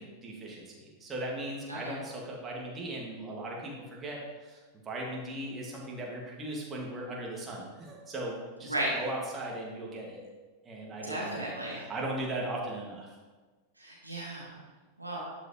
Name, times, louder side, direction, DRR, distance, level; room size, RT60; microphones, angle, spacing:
voice 1, 0.0-4.6 4.9-10.3 10.6-13.1, right 1 dB, 20° right, -2 dB, 1.9 m, -38 dB
voice 2, 11.0-11.8 13.8-14.6 15.0-15.2, right 1 dB, 85° right, -5 dB, 1.9 m, -35 dB
11.5 x 5.0 x 3.1 m, 1.3 s
figure-of-eight pair, 90°, 0 cm